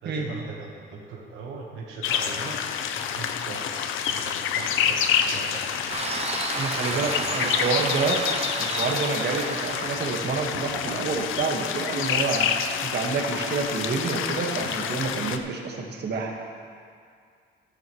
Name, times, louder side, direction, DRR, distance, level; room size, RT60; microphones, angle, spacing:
voice 1, 0.0-3.7 4.1-6.1 6.8-7.5, right 4 dB, 85° right, -2 dB, 1.4 m, -39 dB
sound 1, 2.0-15.4, left 8 dB, 85° left, 0.6 m, -28 dB
sound 2, 5.9-10.2, right 3 dB, 30° right, 1.0 m, -32 dB
voice 2, 6.5-8.2 8.6-12.5 12.8-16.3, right 4 dB, 55° right, 0 dB, 1.7 m, -28 dB
13.0 x 12.5 x 3.2 m, 2.2 s
cardioid pair, 90°, 20 cm